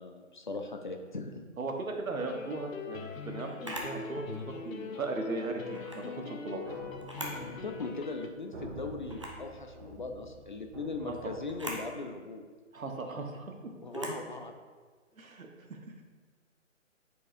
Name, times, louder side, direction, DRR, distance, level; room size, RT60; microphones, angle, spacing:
voice 1, 0.0-1.5 7.6-12.4 13.8-14.5, left 3 dB, 40° left, 5 dB, 0.4 m, -39 dB
voice 2, 1.6-6.6 11.1-11.2 12.7-14.1 15.2-16.0, right 3 dB, 90° right, 3 dB, 1.1 m, -38 dB
sound 1, 2.2-8.3, left 5 dB, 80° left, 0.8 m, -42 dB
Camera, 3.6-4.0 5.7-6.0 7.0-7.5 7.9-8.0 9.1-9.4 11.5-11.9 13.9-14.2, equal, 25° right, 0.4 m, -40 dB
sound 2, 6.6-11.6, right 1 dB, 60° right, 1.7 m, -47 dB
8.5 x 4.6 x 2.5 m, 1.5 s
hypercardioid pair, 150°, 40 cm